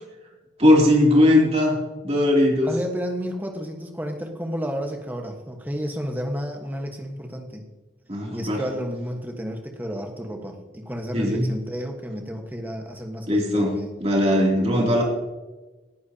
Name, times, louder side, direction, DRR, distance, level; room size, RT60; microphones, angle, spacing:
voice 1, 0.6-2.7 8.1-8.6 11.1-11.5 13.3-13.7 14.0-15.0, left 1 dB, 35° right, -1 dB, 2.8 m, -19 dB
voice 2, 2.5-7.7 8.3-13.9 14.2-14.5, equal, 10° right, 3 dB, 1.3 m, -32 dB
19.0 x 10.5 x 2.8 m, 1.2 s
head